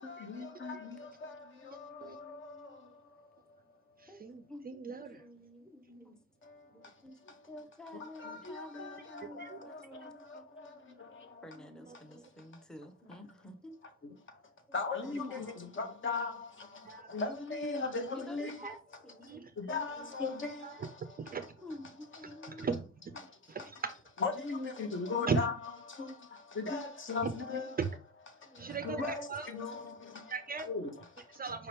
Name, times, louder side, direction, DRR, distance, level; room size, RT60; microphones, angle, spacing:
voice 1, 0.0-4.2 6.4-7.5 7.9-11.6 11.9-12.6 14.0-18.7 19.2-21.4 22.2-22.7 23.2-23.5 24.2-25.5 25.8-27.8 28.3-30.3 30.6-31.4, left 4 dB, 40° left, 1.0 m, -40 dB
voice 2, 4.0-5.2 9.3-10.1 11.9-12.3 16.8-17.1 18.6-18.7 19.3-19.5 20.6-21.4 22.2-23.1 23.5-23.9 25.3-25.4 27.2-27.3 27.8-27.9 28.6-29.5 30.3-30.7 31.3-31.7, right 5 dB, 30° right, 0.4 m, -38 dB
voice 3, 5.1-6.2 6.7-7.1 7.5-10.4 11.4-13.8 14.7-14.8 15.0-15.9 18.2-18.4 18.6-19.5 20.0-20.1 21.6-22.7 23.5-23.7 27.7-27.8 28.5-29.0, left 1 dB, ahead, 0.7 m, -50 dB
5.0 x 2.9 x 3.3 m
cardioid pair, 90°, 30 cm